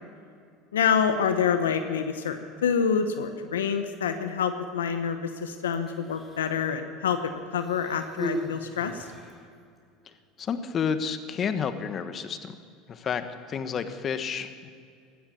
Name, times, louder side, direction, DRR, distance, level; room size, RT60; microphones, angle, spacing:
voice 1, 0.7-9.1, left 7 dB, 90° left, 8 dB, 1.0 m, -27 dB
Human voice, 5.7-6.6 7.5-9.5 10.4-10.5, equal, 10° left, 3.9 m, -37 dB
voice 2, 10.1-12.6 12.9-14.7, left 6 dB, 40° left, 10 dB, 1.3 m, -31 dB
16.0 x 13.0 x 7.1 m, 2.3 s
hypercardioid pair, 85°, 0 cm